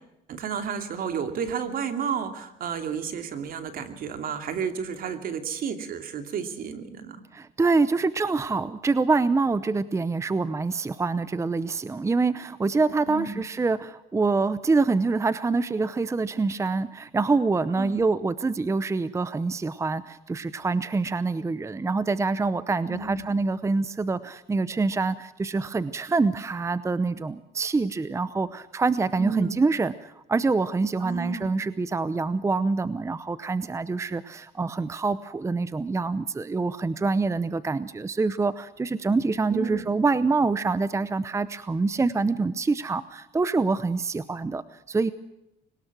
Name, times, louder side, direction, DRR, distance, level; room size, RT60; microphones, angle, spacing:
voice 1, 0.3-7.2 13.1-13.5 17.8-18.0 22.9-23.4 29.2-29.6 31.0-31.5 39.5-39.8, right 6 dB, 60° right, 8 dB, 2.8 m, -32 dB
voice 2, 7.3-45.1, right 3 dB, 15° right, 15 dB, 0.7 m, -26 dB
22.5 x 19.5 x 6.1 m, 0.89 s
cardioid pair, 110°, 17 cm